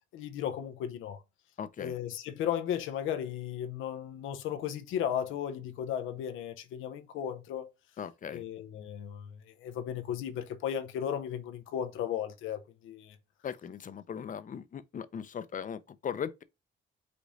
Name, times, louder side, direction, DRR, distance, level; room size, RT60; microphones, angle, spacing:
voice 1, 0.1-1.2 1.8-7.7 8.3-13.2, left 9 dB, 85° left, 0.6 m, -35 dB
voice 2, 1.6-1.9 8.0-8.4 13.4-16.4, left 8 dB, 40° left, 0.6 m, -38 dB
5.1 x 2.5 x 4.0 m
cardioid pair, 90°, 20 cm